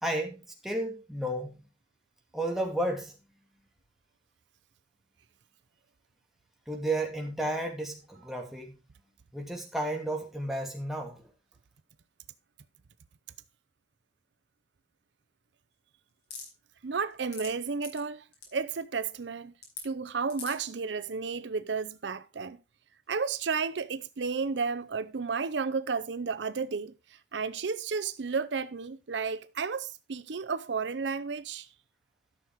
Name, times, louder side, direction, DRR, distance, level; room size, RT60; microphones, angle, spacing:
voice 1, 0.0-1.5 2.3-3.1 6.7-8.7 9.3-11.2, right 1 dB, ahead, 2.6 m, -32 dB
sound 1, 16.3-16.5 17.1-17.5 17.8-18.0 18.3-18.5 19.6-19.8 20.3-20.7, left 5 dB, 70° left, 5.3 m, -41 dB
voice 2, 16.8-18.2 18.5-19.5 19.8-22.6 23.1-26.9 27.3-31.7, right 5 dB, 75° right, 0.6 m, -32 dB
13.0 x 6.5 x 4.6 m
head